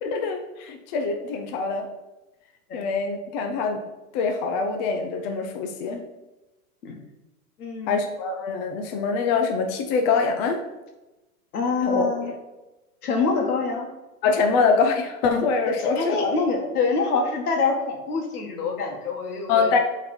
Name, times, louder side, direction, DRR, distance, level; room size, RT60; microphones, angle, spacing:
voice 1, 0.0-1.9 2.7-3.8 4.1-6.0 7.9-10.6 11.8-12.4 14.2-16.3 19.5-19.8, left 4 dB, 30° left, 4 dB, 0.6 m, -24 dB
voice 2, 7.6-8.0 11.5-12.3 13.0-13.9 15.8-19.7, left 4 dB, 80° left, 2 dB, 1.8 m, -25 dB
7.4 x 4.0 x 4.4 m, 1.0 s
hypercardioid pair, 145°, 44 cm